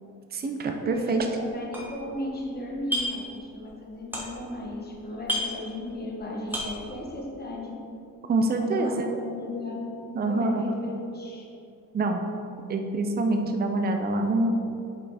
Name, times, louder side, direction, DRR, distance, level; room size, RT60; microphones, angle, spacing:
voice 1, 0.3-1.3 8.3-9.0 10.1-10.6 11.9-12.2 12.7-14.5, right 2 dB, 30° right, 4 dB, 0.6 m, -25 dB
voice 2, 0.8-7.7 8.5-9.8 10.2-11.5, left 1 dB, 30° left, -2 dB, 1.4 m, -36 dB
sound 1, 0.9-1.2 1.4-2.4 2.7-3.3 3.6-4.6 4.9-5.0 5.2-6.2 6.4-6.9, equal, 5° right, 1.4 m, -32 dB
8.2 x 5.5 x 4.2 m, 2.6 s
cardioid pair, 135°, 34 cm